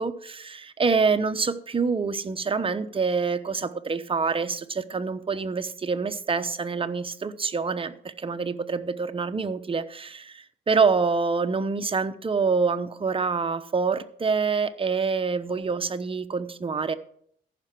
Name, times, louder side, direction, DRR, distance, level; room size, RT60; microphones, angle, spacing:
voice 1, 0.0-16.9, right 5 dB, 25° right, 0.9 m, -26 dB
14.5 x 6.0 x 6.1 m
cardioid pair, 90°, 20 cm